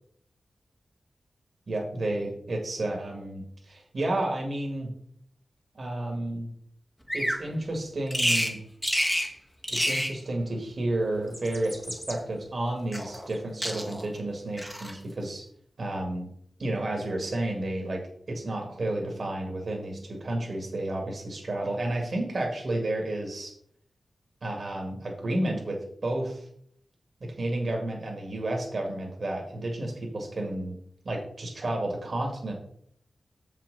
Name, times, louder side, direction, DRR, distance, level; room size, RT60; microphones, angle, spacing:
voice 1, 1.7-4.9 5.7-6.5 7.1-8.6 9.7-15.4 15.8-16.3 16.6-18.0 18.3-23.5 24.4-26.5 27.2-30.8 31.0-32.5, right 1 dB, 50° right, 1 dB, 2.1 m, -31 dB
Bird vocalization bird call bird song, 7.1-7.4 8.1-8.5 8.8-9.3 9.6-10.2 11.2-12.2 12.9-13.4 13.6-14.1 14.6-15.0, equal, 5° left, 1.2 m, -29 dB
7.5 x 5.9 x 5.5 m, 0.65 s
wide cardioid pair, 125°, 0 cm